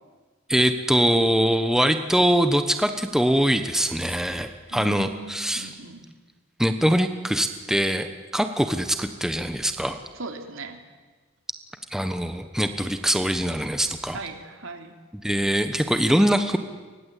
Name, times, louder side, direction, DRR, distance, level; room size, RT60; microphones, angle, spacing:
voice 1, 0.5-5.7 6.6-10.0 11.9-14.2 15.2-16.6, equal, ahead, 7 dB, 1.2 m, -23 dB
voice 2, 4.7-6.0 10.1-10.8 14.1-15.0, right 2 dB, 75° right, 5 dB, 3.1 m, -38 dB
29.5 x 24.0 x 8.4 m, 1.4 s
head